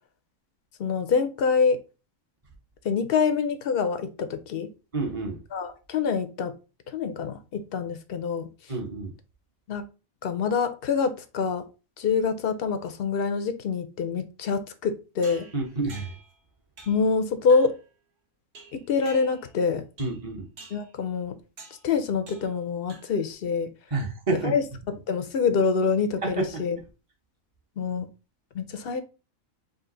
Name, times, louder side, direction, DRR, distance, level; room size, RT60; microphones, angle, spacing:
voice 1, 0.8-1.8 2.8-4.7 5.5-6.5 6.9-8.5 9.7-9.8 10.2-11.6 12.0-15.5 16.9-17.7 18.7-19.8 20.7-21.3 21.8-23.7 24.4-24.6 25.1-26.8 27.8-28.1 28.5-29.0, left 5 dB, 60° left, 0.7 m, -25 dB
voice 2, 4.9-5.4 8.7-9.1 15.5-16.1 20.0-20.5 23.9-24.5 26.2-26.6, right 3 dB, 25° right, 1.0 m, -29 dB
sound 1, 15.2-16.4 16.8-17.1 17.5-17.8 18.6-19.6 20.0-20.3 20.6-20.9 21.6-21.9 22.3-22.6 22.9-23.3, right 3 dB, 50° right, 1.2 m, -48 dB
5.1 x 2.4 x 3.8 m
omnidirectional pair, 1.4 m